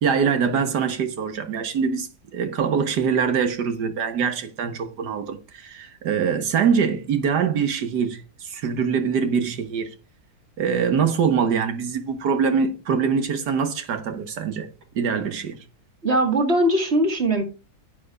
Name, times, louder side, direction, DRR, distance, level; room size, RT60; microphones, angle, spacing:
voice 1, 0.0-9.9 10.6-14.7 15.0-15.6, right 6 dB, 80° right, 1.8 m, -23 dB
voice 2, 16.0-17.4, right 1 dB, 40° right, 2.1 m, -20 dB
10.0 x 8.7 x 2.5 m
omnidirectional pair, 1.8 m